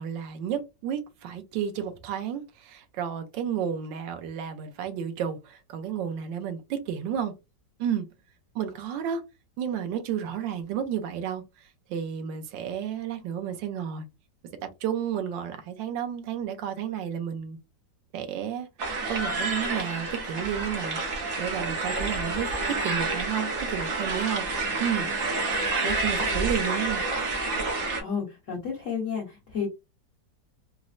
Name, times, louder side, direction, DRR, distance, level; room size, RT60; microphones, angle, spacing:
voice 1, 0.0-7.3 7.8-8.1 8.5-9.2 9.6-14.1 14.6-17.6 18.1-18.7 19.1-24.5 24.8-25.1 25.8-27.0, right 8 dB, 90° right, 1.3 m, -32 dB
sound 1, 18.8-28.0, right 3 dB, 55° right, 0.8 m, -29 dB
voice 2, 27.7-29.7, left 6 dB, 50° left, 1.3 m, -32 dB
4.1 x 2.0 x 2.4 m
omnidirectional pair, 1.9 m